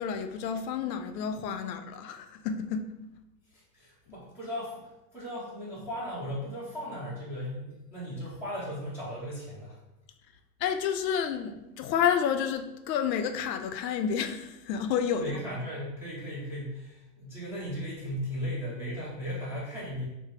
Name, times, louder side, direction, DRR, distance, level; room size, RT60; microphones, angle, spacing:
voice 1, 0.0-2.9 10.6-15.3, left 8 dB, 80° left, 7 dB, 0.5 m, -30 dB
voice 2, 3.5-9.8 15.1-20.0, equal, 5° right, -9 dB, 0.5 m, -37 dB
4.0 x 2.0 x 3.1 m, 0.91 s
hypercardioid pair, 140°, 50 cm